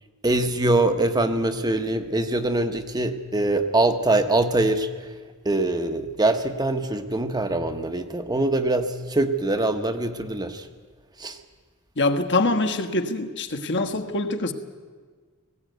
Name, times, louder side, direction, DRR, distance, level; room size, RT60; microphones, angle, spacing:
voice 1, 0.2-4.9 5.4-10.7 11.2-11.4, right 2 dB, 20° right, 8 dB, 1.0 m, -23 dB
voice 2, 12.0-14.5, left 2 dB, 55° left, 6 dB, 1.4 m, -24 dB
18.5 x 16.5 x 9.2 m, 1.5 s
head